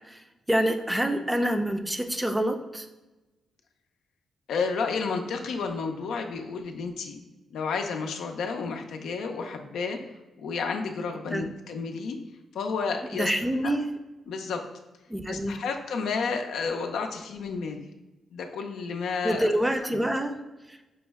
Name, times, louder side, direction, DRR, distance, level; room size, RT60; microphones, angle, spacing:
voice 1, 0.5-2.9 11.3-11.5 13.1-13.9 15.1-15.6 19.2-20.3 20.7-20.8, right 1 dB, 10° right, 6 dB, 0.5 m, -26 dB
voice 2, 4.5-7.2 7.5-10.0 10.4-12.2 12.5-13.3 13.6-13.7 14.3-14.6 15.3-17.8 18.3-19.5, left 5 dB, 80° left, 4 dB, 0.5 m, -31 dB
5.3 x 2.1 x 3.4 m, 1.1 s
supercardioid pair, 60°, 0 cm